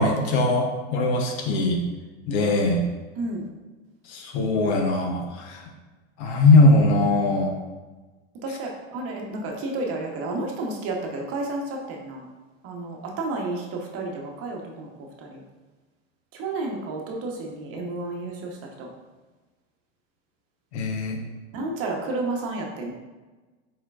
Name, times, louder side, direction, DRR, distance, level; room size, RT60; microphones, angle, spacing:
voice 1, 0.0-1.8 2.3-2.8 4.1-5.6 6.2-7.6 20.7-21.2, left 2 dB, 70° left, 3 dB, 0.9 m, -20 dB
voice 2, 3.1-3.5 8.4-12.3 12.6-14.9 15.2-15.4 16.3-18.9 21.5-22.9, right 2 dB, 40° right, 0 dB, 0.9 m, -31 dB
4.4 x 4.4 x 2.4 m, 1.2 s
supercardioid pair, 120°, 34 cm